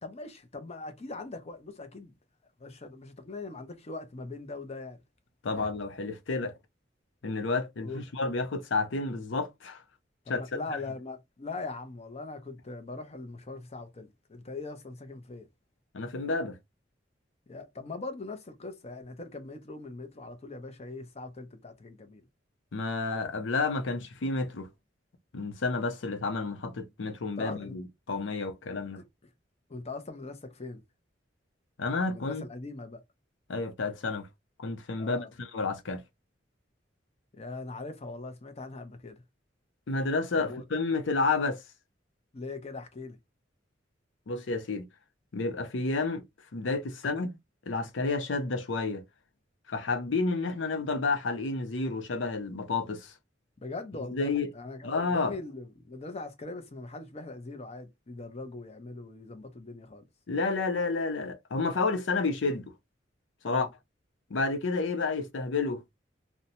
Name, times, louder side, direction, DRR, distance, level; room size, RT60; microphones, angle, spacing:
voice 1, 0.0-2.1 2.6-5.0 7.8-8.0 10.3-15.5 17.5-22.2 27.4-27.7 29.7-30.8 32.1-33.0 35.0-35.3 37.3-39.2 40.4-40.6 42.3-43.2 53.6-60.0 63.4-63.7, left 3 dB, 35° left, 0.6 m, -41 dB
voice 2, 5.4-6.5 7.2-9.8 10.3-10.4 15.9-16.6 22.7-24.7 25.3-29.0 31.8-32.4 33.5-34.3 34.6-36.0 39.9-41.6 44.3-44.9 45.3-46.2 46.5-47.4 47.7-49.0 49.7-53.1 54.1-54.5 54.8-55.4 60.3-62.7 63.4-63.7 64.3-65.8, left 3 dB, 85° left, 0.6 m, -30 dB
2.7 x 2.1 x 2.7 m
head